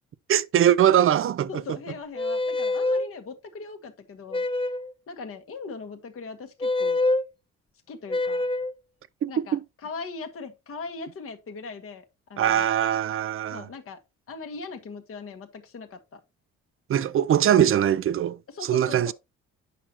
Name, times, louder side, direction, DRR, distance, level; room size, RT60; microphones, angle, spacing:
voice 1, 0.3-1.5 9.2-9.6 12.4-13.7 16.9-19.1, right 10 dB, 45° right, 0.5 m, -22 dB
voice 2, 1.5-4.5 5.1-7.0 7.9-8.4 9.3-12.7 13.5-14.0 14.3-16.2 18.5-19.1, left 4 dB, 45° left, 1.4 m, -40 dB
sound 1, 2.1-3.1 4.3-4.9 6.6-7.2 8.1-8.7, left 2 dB, 20° left, 0.6 m, -25 dB
9.1 x 5.9 x 2.9 m
cardioid pair, 90°, 30 cm